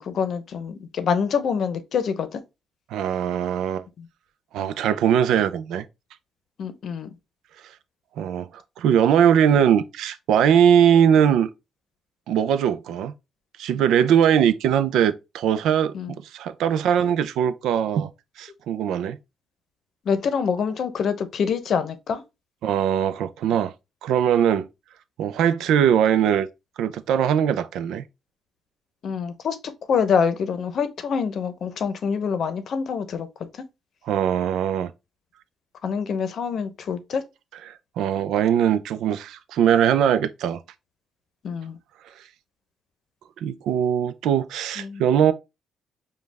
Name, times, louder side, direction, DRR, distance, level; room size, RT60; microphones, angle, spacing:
voice 1, 0.0-2.4 4.0-4.1 6.6-7.1 15.9-16.1 20.1-22.2 29.0-29.6 29.9-33.3 35.8-37.2 41.4-41.8 44.8-45.0, left 6 dB, 60° left, 0.7 m, -25 dB
voice 2, 2.9-3.8 4.5-5.8 8.2-8.5 8.8-11.5 12.3-13.1 13.6-15.9 16.3-18.1 18.4-19.2 22.6-23.7 24.0-24.7 25.2-26.5 26.8-28.0 34.1-34.9 38.0-40.6 43.4-45.3, right 9 dB, 85° right, 0.4 m, -20 dB
5.2 x 2.3 x 3.3 m
cardioid pair, 90°, 0 cm